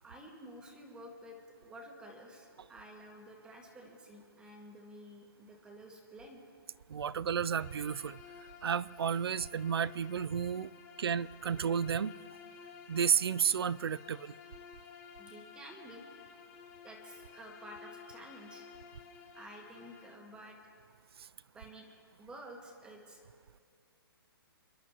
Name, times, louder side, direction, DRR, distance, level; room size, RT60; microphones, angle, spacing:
voice 1, 0.0-6.4 15.2-16.0 16.8-18.7 19.3-20.6 21.5-21.9 22.2-23.2, equal, 5° right, 1.6 m, -51 dB
voice 2, 6.9-8.2 8.6-10.7 11.0-12.1 12.9-14.3, right 7 dB, 85° right, 0.4 m, -32 dB
Bowed string instrument, 7.5-20.3, left 6 dB, 20° left, 1.4 m, -53 dB
29.5 x 12.0 x 3.0 m
hypercardioid pair, 160°, 13 cm